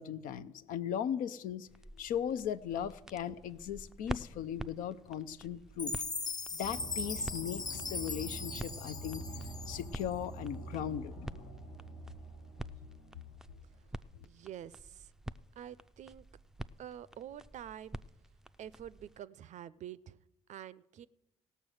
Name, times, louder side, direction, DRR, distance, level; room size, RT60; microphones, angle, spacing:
voice 1, 0.0-1.7 2.0-6.0 6.5-9.2 9.7-11.3, left 9 dB, 70° left, 13 dB, 0.6 m, -38 dB
sound 1, 1.7-19.2, right 1 dB, 5° right, 0.4 m, -48 dB
Chime, 5.8-10.0, left 3 dB, 25° left, 0.7 m, -39 dB
sound 2, 6.6-13.8, right 1 dB, 85° left, 1.8 m, -46 dB
voice 2, 14.2-15.1 15.6-16.2 16.8-18.0 18.6-20.2 20.5-21.1, right 10 dB, 55° right, 18 dB, 0.5 m, -47 dB
17.0 x 6.6 x 6.4 m, 0.93 s
hypercardioid pair, 55°, 15 cm